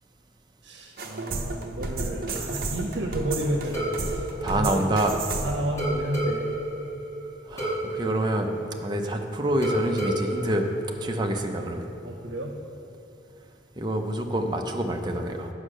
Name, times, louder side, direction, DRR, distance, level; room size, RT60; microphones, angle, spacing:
voice 1, 0.6-4.9 5.4-6.6 12.0-12.6, right 1 dB, 85° right, 2 dB, 0.8 m, -31 dB
sound 1, 1.0-5.7, right 3 dB, 55° right, 0.8 m, -32 dB
sound 2, 3.7-5.3 5.8-9.2 9.6-11.6, right 1 dB, 15° left, 1.5 m, -32 dB
voice 2, 4.4-5.2 7.5-10.7 11.0-11.9 13.8-15.5, right 1 dB, 25° right, 3 dB, 0.6 m, -27 dB
8.3 x 5.4 x 6.2 m, 2.9 s
head